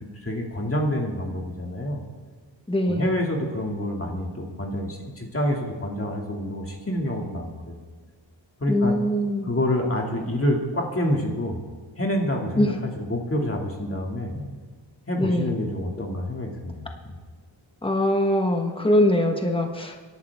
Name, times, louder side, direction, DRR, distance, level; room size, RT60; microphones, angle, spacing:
voice 1, 0.2-2.0 2.9-7.7 8.6-8.9 9.4-11.6 12.0-14.3 15.1-17.1, left 1 dB, 30° left, 0 dB, 2.4 m, -27 dB
voice 2, 2.7-3.1 8.7-9.5 12.6-12.8 14.3-14.4 15.2-15.5 17.8-20.1, left 1 dB, 10° left, 3 dB, 1.3 m, -22 dB
25.5 x 11.5 x 3.6 m, 1.5 s
wide cardioid pair, 135°, 46 cm